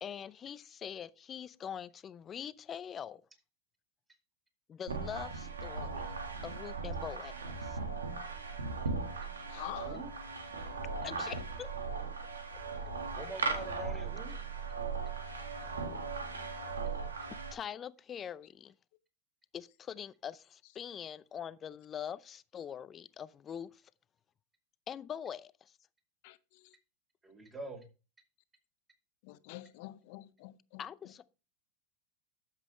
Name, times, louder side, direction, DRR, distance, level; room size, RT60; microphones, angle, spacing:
voice 1, 0.0-3.2 4.7-6.1 6.4-7.8 11.0-11.8 17.5-18.7 19.5-23.8 24.9-25.7 30.8-31.3, left 8 dB, 30° left, 0.5 m, -43 dB
sound 1, 4.9-17.5, right 4 dB, 85° right, 1.7 m, -38 dB
voice 2, 9.5-10.0 26.2-26.7 29.2-30.9, left 18 dB, 60° left, 0.9 m, -47 dB
voice 3, 13.1-14.3 27.2-27.8, right 3 dB, 20° right, 4.9 m, -44 dB
12.0 x 7.5 x 3.2 m
hypercardioid pair, 90°, 0 cm